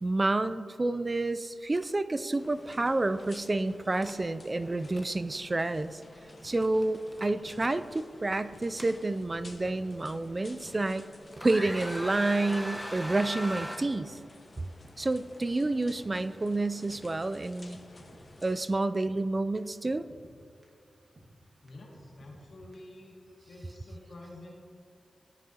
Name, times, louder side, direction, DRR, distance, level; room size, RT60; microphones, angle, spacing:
voice 1, 0.0-6.0 6.4-11.1 11.4-14.2 15.0-17.8 18.4-20.0, right 2 dB, 35° right, 13 dB, 0.3 m, -29 dB
sound 1, 1.8-1.9 2.2-2.4 4.0-4.2 4.7-5.1 6.6-6.8 7.1-7.7 8.5-9.5 10.1-10.2 10.8-11.1 11.3-13.8, equal, ahead, 1.0 m, -39 dB
sound 2, 2.4-18.7, left 2 dB, 45° left, 0.9 m, -53 dB
sound 3, 6.4-6.5 6.9-7.0 7.2-7.7 8.0-8.1 8.5-8.6 9.0-9.1 9.3-9.8 10.1-10.2 10.6-10.7 11.1-11.2 11.4-11.9 12.2-12.3 12.7-12.8 13.3-14.0 14.3-14.4 14.8-15.0 15.4-15.5 15.6-16.1 16.4-16.5 16.9-17.1 17.5-17.6 17.7-18.2 18.5-18.6 19.0-19.2 19.6-19.7 19.8-20.3 20.6-20.7 21.2-21.3 21.7-21.8 21.9-22.5 22.7-22.8, right 1 dB, 60° right, 1.6 m, -54 dB
voice 2, 21.6-23.1 23.5-24.5, left 1 dB, 70° left, -2 dB, 2.1 m, -48 dB
14.5 x 6.2 x 2.9 m, 2.5 s
cardioid pair, 55°, 0 cm